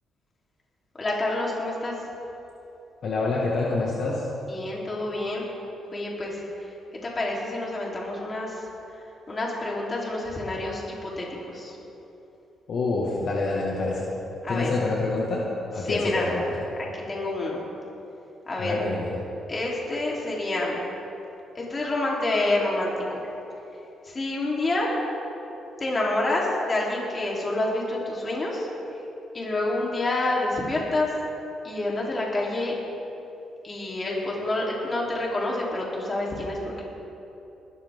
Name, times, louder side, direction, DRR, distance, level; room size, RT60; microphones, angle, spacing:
voice 1, 1.0-1.9 4.5-5.4 5.9-6.4 7.0-8.6 9.3-11.7 14.4-14.7 15.9-16.3 16.9-17.6 18.5-18.7 19.5-20.7 21.6-23.2 24.1-25.0 25.8-28.7 29.3-31.1 31.6-32.8 33.6-36.8, left 2 dB, 30° left, -4 dB, 3.6 m, -28 dB
voice 2, 3.0-4.2 12.7-14.1 14.5-15.5 15.7-16.6 18.6-19.2, left 3 dB, 55° left, -4 dB, 1.9 m, -27 dB
20.5 x 13.5 x 3.7 m, 3.0 s
cardioid pair, 110°, 0 cm